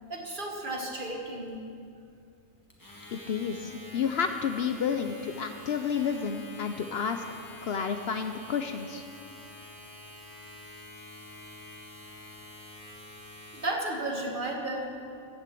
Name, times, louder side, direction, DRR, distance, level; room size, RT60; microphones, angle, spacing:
voice 1, 0.1-1.6 13.5-14.9, right 1 dB, 40° right, 1 dB, 1.7 m, -33 dB
Domestic sounds home sounds, 2.7-13.8, left 1 dB, 15° left, 1.7 m, -48 dB
voice 2, 3.1-9.0, left 6 dB, 60° left, 7 dB, 0.8 m, -31 dB
14.5 x 6.8 x 8.4 m, 2.4 s
omnidirectional pair, 1.3 m